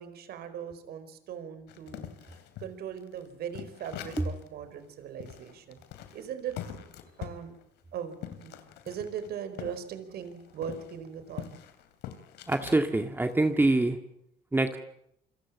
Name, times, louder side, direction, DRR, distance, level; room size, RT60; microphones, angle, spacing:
voice 1, 0.0-2.1 2.6-5.8 6.1-6.6 7.2-7.5 7.9-8.6 8.9-11.5, right 8 dB, 70° right, 10 dB, 4.7 m, -39 dB
sound 1, 1.7-4.5 4.8-4.9 5.2-9.8 10.1-12.8 13.3-13.7, left 10 dB, 85° left, 3.0 m, -44 dB
voice 2, 12.5-14.0 14.5-14.8, right 2 dB, 10° right, 6 dB, 2.0 m, -25 dB
28.0 x 24.0 x 7.4 m, 0.75 s
cardioid pair, 110°, 17 cm